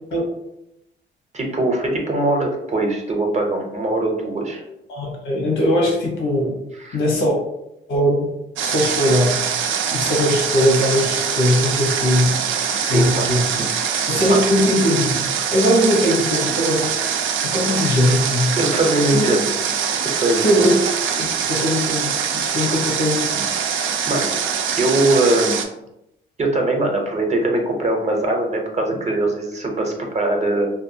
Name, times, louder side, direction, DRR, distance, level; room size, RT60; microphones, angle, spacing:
voice 1, 1.3-4.6 6.8-7.0 12.7-13.2 13.9-14.0 14.3-14.4 18.5-19.5 20.0-20.7 24.1-24.3 24.8-25.6 26.4-30.7, right 2 dB, 35° right, 2 dB, 0.7 m, -21 dB
voice 2, 4.9-6.5 6.9-7.4 7.9-8.3 8.6-9.4 9.9-12.3 12.8-13.5 14.1-15.1 15.5-16.9 17.4-18.5 19.1-19.2 20.4-20.7 21.2-23.3, equal, 80° left, -2 dB, 1.0 m, -19 dB
Water, 8.6-25.6, right 7 dB, 80° right, 0.4 m, -23 dB
2.6 x 2.3 x 2.7 m, 0.85 s
cardioid pair, 90°, 20 cm